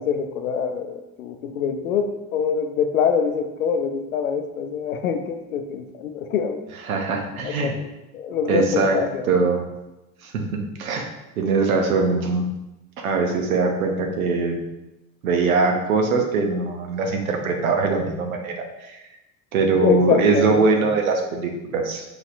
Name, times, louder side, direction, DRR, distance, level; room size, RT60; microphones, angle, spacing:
voice 1, 0.0-6.6 7.3-9.2 19.8-21.0, left 6 dB, 85° left, 6 dB, 0.6 m, -25 dB
voice 2, 6.8-7.7 8.5-9.0 9.3-9.6 10.2-10.3 10.8-11.1 11.4-12.5 13.0-14.7 15.2-18.5 18.8-19.0 19.5-22.0, right 4 dB, 85° right, 3 dB, 0.8 m, -21 dB
4.9 x 4.1 x 2.4 m, 0.99 s
hypercardioid pair, 60°, 41 cm